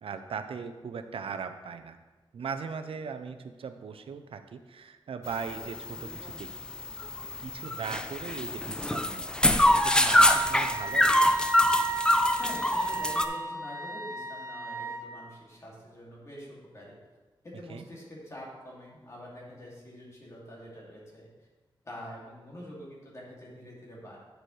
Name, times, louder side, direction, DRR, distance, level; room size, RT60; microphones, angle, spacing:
voice 1, 0.0-2.0 2.3-6.5 7.4-11.1 17.7-17.9, right 6 dB, 85° right, 8 dB, 0.5 m, -39 dB
sound 1, 5.3-13.2, left 1 dB, 10° left, 0.4 m, -25 dB
Wind instrument woodwind instrument, 10.1-15.0, right 3 dB, 35° right, 1.0 m, -35 dB
voice 2, 12.4-17.0 17.4-21.3 21.8-24.2, equal, 35° left, -5 dB, 2.4 m, -45 dB
9.0 x 6.8 x 3.2 m, 1.2 s
wide cardioid pair, 135°, 9 cm